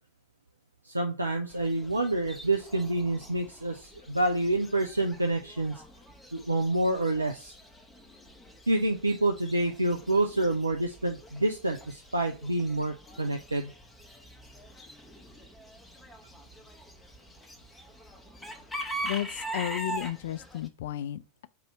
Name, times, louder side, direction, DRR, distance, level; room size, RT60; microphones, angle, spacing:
voice 1, 0.9-5.8 6.3-7.5 8.7-13.7, right 2 dB, 85° right, 0.4 m, -28 dB
Chicken rooster / Bird, 1.5-20.7, right 1 dB, 5° left, 0.8 m, -43 dB
voice 2, 19.0-21.5, left 12 dB, 60° left, 0.3 m, -33 dB
4.1 x 2.7 x 4.5 m
figure-of-eight pair, 85°, 0 cm